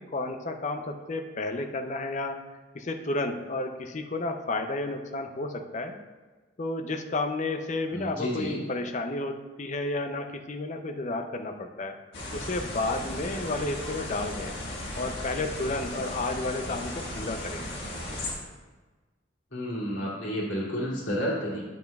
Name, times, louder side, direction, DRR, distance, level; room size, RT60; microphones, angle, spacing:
voice 1, 0.0-2.4 2.7-6.0 6.6-12.0 12.3-14.5 15.0-17.7, left 2 dB, 40° left, 5 dB, 0.5 m, -32 dB
voice 2, 7.9-8.6 19.5-21.7, equal, 75° left, -6 dB, 2.4 m, -31 dB
sound 1, 12.1-18.3, left 1 dB, 60° left, 1.6 m, -36 dB
9.5 x 7.0 x 2.3 m, 1.3 s
head